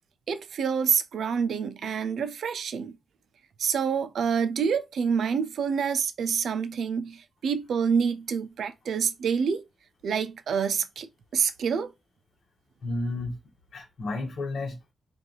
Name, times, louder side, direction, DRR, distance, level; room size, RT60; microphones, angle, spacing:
voice 1, 0.3-2.9 3.6-9.6 10.0-11.9, right 6 dB, 60° right, 0.5 m, -27 dB
voice 2, 12.8-13.4 13.7-14.9, left 2 dB, 45° left, 1.2 m, -32 dB
4.6 x 2.6 x 3.9 m
wide cardioid pair, 165°, 0 cm